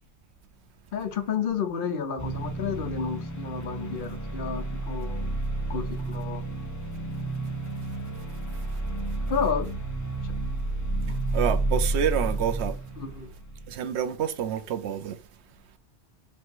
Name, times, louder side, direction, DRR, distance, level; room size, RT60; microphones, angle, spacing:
voice 1, 0.9-5.3 5.7-6.4 9.3-9.7 11.1-11.2 13.0-13.3, left 6 dB, 60° left, 0.8 m, -31 dB
sound 1, 2.2-13.7, right 2 dB, 20° left, 0.6 m, -31 dB
voice 2, 11.3-12.7 13.7-15.2, right 9 dB, 85° right, 0.9 m, -28 dB
3.2 x 2.8 x 4.3 m
omnidirectional pair, 1.1 m